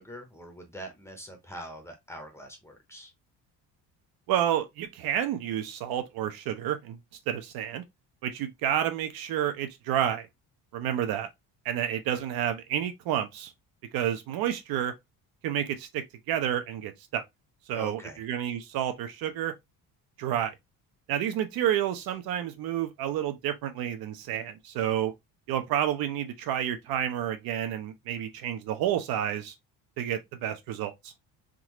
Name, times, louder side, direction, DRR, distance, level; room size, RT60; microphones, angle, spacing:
voice 1, 0.0-3.1 17.7-18.2, equal, 5° left, 0.7 m, -43 dB
voice 2, 4.3-7.0 7.3-7.8 8.2-10.3 10.7-11.3 11.6-13.5 13.9-14.9 15.4-17.2 17.7-19.5 20.2-20.5 21.1-25.1 25.5-29.5 30.0-31.1, right 10 dB, 70° right, 0.8 m, -30 dB
3.7 x 2.4 x 2.9 m
cardioid pair, 150°, 37 cm